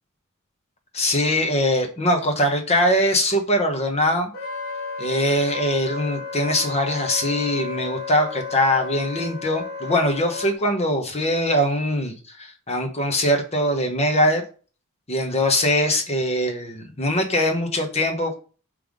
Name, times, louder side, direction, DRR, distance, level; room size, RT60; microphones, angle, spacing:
voice 1, 0.9-4.3 5.0-14.4 15.1-18.4, left 1 dB, 30° left, 4 dB, 1.2 m, -22 dB
Wind instrument woodwind instrument, 4.3-10.5, left 5 dB, 65° left, 1.7 m, -33 dB
5.6 x 3.4 x 5.1 m, 0.38 s
head